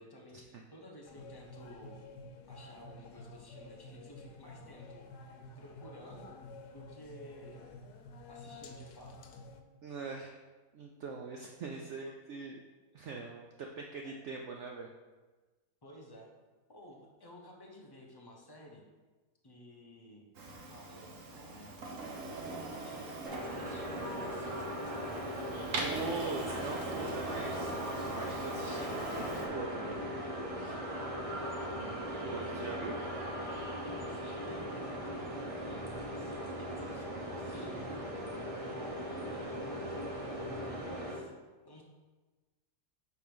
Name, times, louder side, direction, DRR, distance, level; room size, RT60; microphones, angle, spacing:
voice 1, 0.0-2.0 2.5-5.1 5.6-6.4 6.7-7.7 8.3-9.3 14.0-14.1 15.8-16.3 16.7-18.8 19.4-20.3 20.7-21.9 22.4-24.7 30.8-31.2 32.4-32.7 33.8-34.8 35.1-37.9 38.6-41.3 41.6-41.8, equal, 35° left, -1 dB, 0.4 m, -53 dB
sound 1, 1.0-9.6, left 2 dB, 80° left, 1.2 m, -50 dB
voice 2, 9.8-10.4 10.7-12.6 12.9-14.9 25.8-27.7 28.1-30.0 30.5-30.8 31.8-32.9, right 4 dB, 75° right, 1 dB, 0.6 m, -42 dB
Printer, 20.3-29.5, right 2 dB, 55° right, 1.1 m, -42 dB
sound 2, 23.2-41.2, equal, 35° right, 0.5 m, -39 dB
4.6 x 4.5 x 5.2 m, 1.3 s
omnidirectional pair, 1.7 m